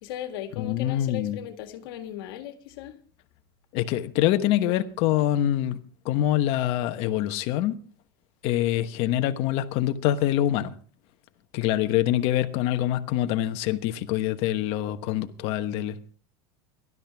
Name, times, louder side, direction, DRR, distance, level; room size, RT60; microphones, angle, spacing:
voice 1, 0.0-3.0, left 10 dB, 75° left, 1.8 m, -37 dB
voice 2, 0.6-1.4 3.7-5.8 6.0-7.8 8.4-10.8 11.5-16.1, left 12 dB, 55° left, 1.1 m, -25 dB
19.0 x 12.0 x 3.5 m
supercardioid pair, 135°, 12 cm